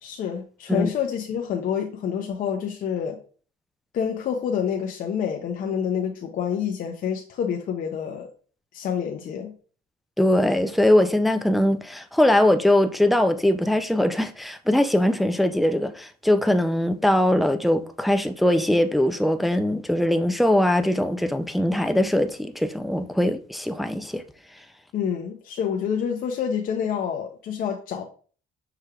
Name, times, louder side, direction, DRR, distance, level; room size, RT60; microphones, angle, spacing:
voice 1, 0.0-3.2 3.9-8.3 8.7-9.5 24.9-28.0, left 8 dB, 55° left, 0.6 m, -27 dB
voice 2, 10.2-24.2, left 1 dB, ahead, 0.3 m, -21 dB
5.8 x 3.2 x 2.3 m
cardioid pair, 110°, 17 cm